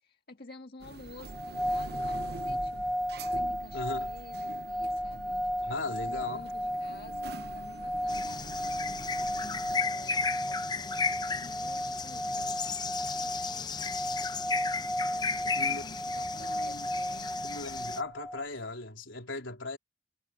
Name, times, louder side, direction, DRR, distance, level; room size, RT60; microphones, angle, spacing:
voice 1, 0.0-2.9 3.3-8.3 9.4-14.1 15.1-17.7, left 2 dB, 50° left, 1.7 m, -51 dB
sound 1, 0.8-9.8, right 3 dB, 55° right, 0.8 m, -45 dB
sound 2, 1.3-18.4, equal, ahead, 1.2 m, -34 dB
voice 2, 3.7-4.1 5.6-6.5 15.5-15.8 16.3-16.9 17.4-19.8, left 2 dB, 80° left, 3.8 m, -38 dB
sound 3, 8.1-18.0, left 5 dB, 20° left, 0.6 m, -35 dB
head